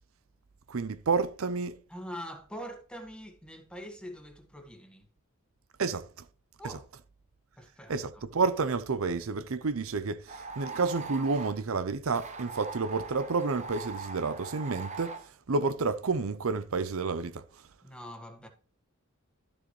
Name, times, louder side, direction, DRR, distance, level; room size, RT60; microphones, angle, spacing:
voice 1, 0.7-1.8 5.8-6.2 7.9-17.4, right 4 dB, 70° right, 0.6 m, -30 dB
voice 2, 1.9-5.1 6.6-6.8 7.6-8.2 17.8-18.5, equal, 5° left, 1.5 m, -44 dB
sound 1, 10.3-11.6 12.1-15.2, right 4 dB, 30° right, 1.1 m, -41 dB
12.5 x 7.1 x 3.2 m
head